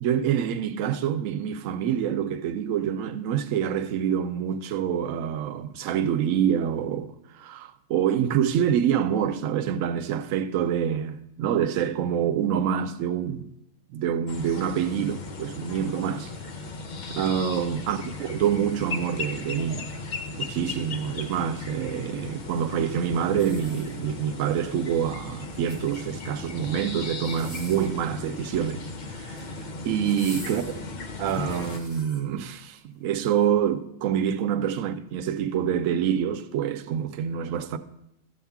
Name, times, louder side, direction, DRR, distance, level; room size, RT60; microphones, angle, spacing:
voice 1, 0.0-13.5 13.9-16.3 17.1-19.9 20.3-28.9 29.1-29.4 29.8-30.7 31.2-37.8, right 9 dB, 90° right, 1.0 m, -26 dB
sound 1, 14.3-31.8, left 3 dB, 45° left, 0.7 m, -36 dB
sound 2, 23.3-24.3 25.4-26.2 27.2-28.0 29.1-29.5 30.0-32.2 32.8-32.9, left 2 dB, 85° left, 2.3 m, -45 dB
12.5 x 7.2 x 3.5 m
omnidirectional pair, 1.3 m